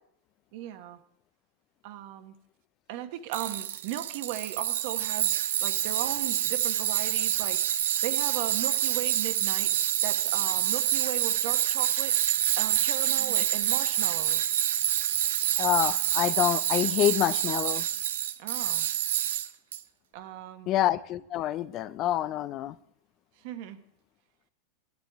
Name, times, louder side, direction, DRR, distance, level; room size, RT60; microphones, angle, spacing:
voice 1, 0.5-1.0 1.8-2.3 2.9-5.3 5.6-9.7 10.0-12.1 12.6-14.4 18.4-18.9 20.1-20.7 23.4-23.8, right 12 dB, 55° right, 1.1 m, -37 dB
Tools, 3.3-19.8, right 11 dB, 75° right, 0.6 m, -27 dB
voice 2, 15.6-17.9 20.7-22.7, left 13 dB, 35° left, 0.4 m, -27 dB
13.0 x 10.5 x 3.5 m
supercardioid pair, 135°, 0 cm